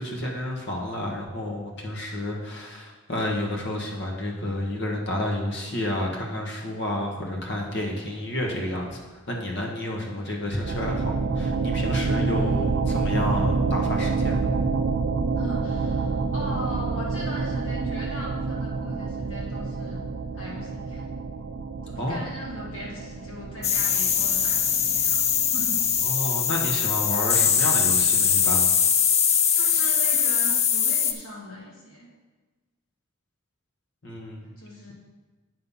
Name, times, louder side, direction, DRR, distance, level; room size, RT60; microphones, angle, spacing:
voice 1, 0.0-14.5 22.0-22.2 26.0-28.7 34.0-34.5, left 1 dB, 55° left, 0 dB, 1.4 m, -30 dB
sound 1, 10.6-26.0, right 4 dB, 55° right, 0.4 m, -28 dB
voice 2, 12.1-13.1 15.4-20.0 20.3-21.0 21.8-25.2 25.5-25.8 29.5-32.1 34.4-34.9, equal, 75° left, -4 dB, 2.5 m, -38 dB
sound 2, 23.6-31.1, left 7 dB, 30° left, 0.4 m, -22 dB
7.8 x 5.5 x 5.6 m, 1.2 s
head